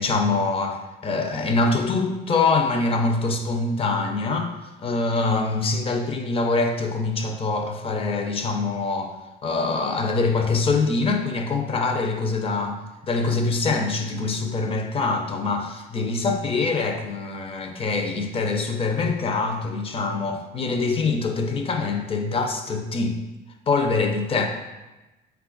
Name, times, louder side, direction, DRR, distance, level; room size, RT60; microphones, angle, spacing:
voice 1, 0.0-4.5 4.8-12.8 13.1-23.2 23.7-24.5, left 3 dB, 35° left, 4 dB, 0.5 m, -24 dB
4.0 x 2.3 x 3.8 m, 1.1 s
cardioid pair, 110°, 17 cm